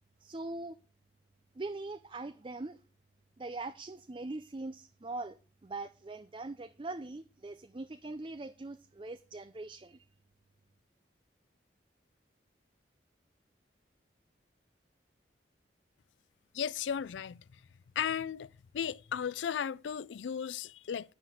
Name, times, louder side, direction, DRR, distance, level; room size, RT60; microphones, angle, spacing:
voice 1, 0.2-0.8 1.6-2.8 3.4-5.4 5.6-10.1, right 2 dB, 30° right, 0.5 m, -42 dB
voice 2, 16.5-17.4 18.0-18.5 18.7-21.1, left 8 dB, 85° left, 0.4 m, -35 dB
9.1 x 6.2 x 7.5 m
head